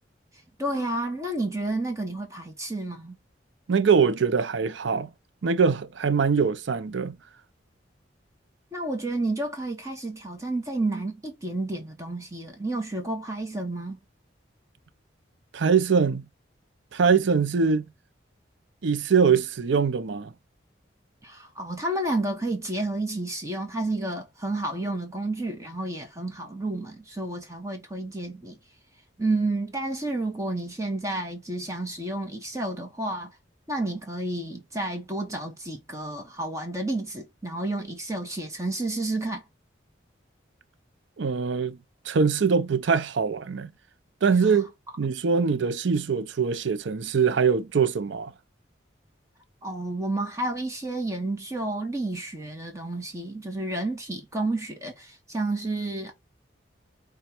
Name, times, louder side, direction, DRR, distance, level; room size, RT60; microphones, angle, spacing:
voice 1, 0.6-3.2 8.7-14.0 21.2-28.6 29.2-33.3 33.7-39.4 49.6-56.1, right 2 dB, 15° right, 0.9 m, -30 dB
voice 2, 3.7-5.1 5.4-7.2 15.5-16.2 16.9-17.8 18.8-20.3 41.2-41.8 42.1-43.7 44.2-44.7 45.0-48.3, right 5 dB, 80° right, 0.5 m, -23 dB
5.1 x 2.3 x 4.4 m
head